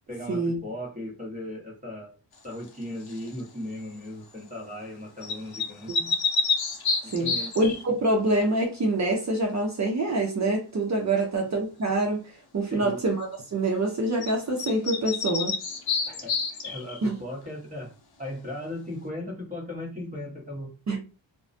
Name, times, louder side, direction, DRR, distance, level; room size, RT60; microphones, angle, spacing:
voice 1, 0.1-2.1 2.4-5.9 7.0-7.5 11.1-11.3 12.7-13.0 16.1-17.9 18.2-20.7, left 1 dB, 15° right, 1.0 m, -37 dB
sound 1, 3.1-3.4 5.2-7.8 14.2-14.3 14.6-17.0, left 4 dB, 55° left, 0.6 m, -28 dB
voice 2, 7.1-12.2 12.5-15.5 17.0-17.1 20.9-21.0, right 2 dB, 40° right, 0.6 m, -26 dB
2.3 x 2.1 x 2.5 m
wide cardioid pair, 120°, 46 cm